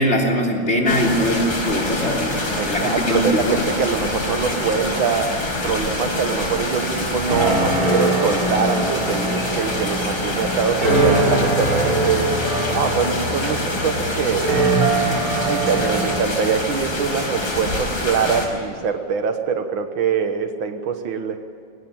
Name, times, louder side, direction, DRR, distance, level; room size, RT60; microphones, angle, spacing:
voice 1, 0.0-2.4 2.6-3.6, equal, 35° left, 0 dB, 3.6 m, -21 dB
sound 1, 0.9-18.5, left 2 dB, 80° left, 5.8 m, -26 dB
voice 2, 2.6-5.4 5.6-12.3 12.7-14.5 15.3-21.4, right 6 dB, 80° right, 7 dB, 2.0 m, -24 dB
sound 2, 7.3-16.2, right 2 dB, 45° right, 4.2 m, -22 dB
23.5 x 18.5 x 8.8 m, 2.5 s
omnidirectional pair, 2.1 m